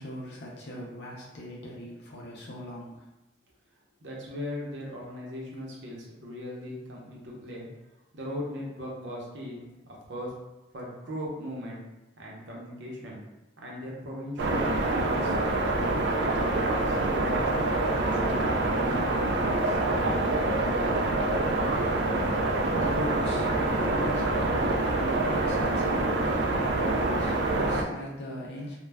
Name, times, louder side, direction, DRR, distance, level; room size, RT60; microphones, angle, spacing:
voice 1, 0.0-3.0 22.1-28.8, left 1 dB, 60° left, -3 dB, 0.5 m, -40 dB
voice 2, 4.0-7.7 8.1-9.6 10.1-10.3 10.7-11.8 12.2-13.2 13.6-15.8 16.2-17.4 18.0-20.2, left 1 dB, 80° right, -3 dB, 0.7 m, -38 dB
sound 1, 14.4-27.8, right 2 dB, 65° right, 0.3 m, -26 dB
2.1 x 2.1 x 3.3 m, 0.99 s
head